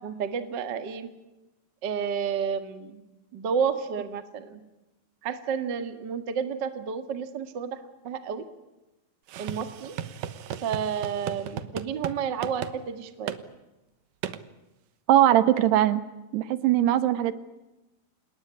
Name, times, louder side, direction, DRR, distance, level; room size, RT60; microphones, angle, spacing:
voice 1, 0.0-1.1 1.8-3.0 3.3-4.6 5.2-8.5 9.4-9.9 10.6-13.4, right 7 dB, 40° right, 10 dB, 1.7 m, -31 dB
sound 1, 9.3-12.2 12.4-12.8 13.3-13.4 14.2-14.4, right 10 dB, 65° right, 2.5 m, -35 dB
voice 2, 15.1-16.0 16.3-17.3, right 12 dB, 85° right, 13 dB, 3.4 m, -20 dB
27.5 x 20.0 x 9.9 m, 1.0 s
omnidirectional pair, 4.6 m